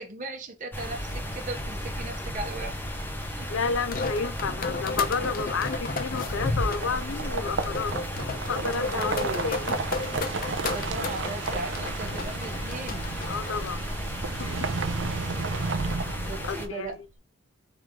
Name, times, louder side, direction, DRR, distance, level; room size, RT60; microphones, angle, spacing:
voice 1, 0.0-2.8 3.3-3.5 8.9-9.7 10.7-13.1 16.3-17.0, right 2 dB, 40° right, 1.0 m, -37 dB
sound 1, 0.7-16.7, equal, 10° left, 0.8 m, -35 dB
voice 2, 3.5-8.0 8.3-9.7 13.3-13.8 14.4-14.7 16.0-16.1 16.4-17.0, left 5 dB, 80° left, 0.5 m, -31 dB
sound 2, 3.6-13.7, left 3 dB, 50° left, 0.7 m, -33 dB
sound 3, 6.1-16.9, right 4 dB, 65° right, 0.6 m, -33 dB
4.7 x 3.0 x 3.7 m
head